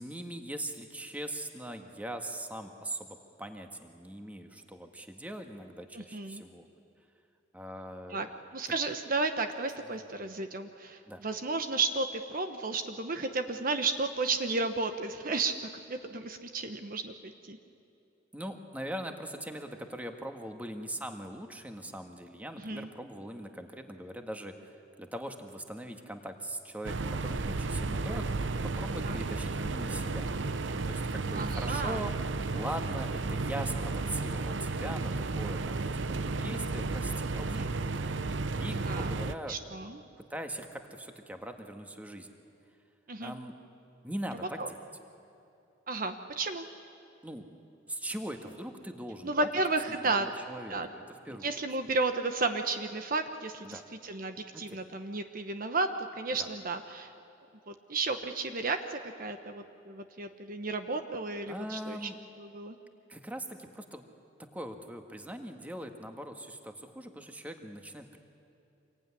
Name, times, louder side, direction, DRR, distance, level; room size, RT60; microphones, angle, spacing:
voice 1, 0.0-6.7 7.5-8.3 11.1-11.2 18.3-24.5 25.0-30.3 30.7-32.1 32.5-38.1 38.6-39.6 40.3-42.3 43.2-43.5 44.0-44.8 47.2-47.5 47.9-49.5 50.0-51.6 53.6-53.8 54.5-54.8 56.4-56.5 61.5-62.2 63.1-64.0 64.5-68.2, right 1 dB, 10° right, 4 dB, 1.7 m, -41 dB
voice 2, 5.9-6.4 8.1-8.3 8.5-15.5 15.9-17.6 22.6-22.9 29.0-29.2 31.3-32.0 37.5-37.7 38.8-39.1 39.5-40.0 43.1-43.3 44.6-44.7 45.9-46.6 49.2-50.3 50.7-50.9 51.4-57.1 57.7-62.1 62.4-62.8, right 3 dB, 45° right, 7 dB, 1.1 m, -33 dB
sound 1, 26.8-39.3, right 3 dB, 70° right, 0.8 m, -33 dB
26.5 x 22.0 x 9.9 m, 2.7 s
head